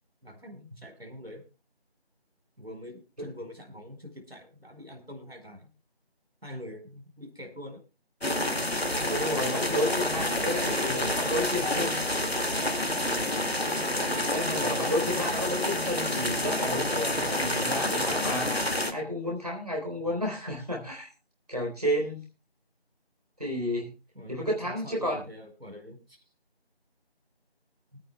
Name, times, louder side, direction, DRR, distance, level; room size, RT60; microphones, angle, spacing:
voice 1, 0.2-1.4 2.6-5.7 6.4-7.8 9.7-12.0 15.1-15.2 20.0-20.2 24.1-26.2 27.9-28.0, left 1 dB, 70° right, 4 dB, 4.3 m, -44 dB
sound 1, 8.2-18.9, left 1 dB, 70° left, 2.1 m, -28 dB
voice 2, 9.0-12.1 14.3-18.5 18.9-21.1 21.5-22.2 23.4-23.9 24.3-25.2, equal, 40° right, -2 dB, 3.8 m, -31 dB
25.0 x 9.7 x 2.2 m, 0.31 s
figure-of-eight pair, 180°, 32 cm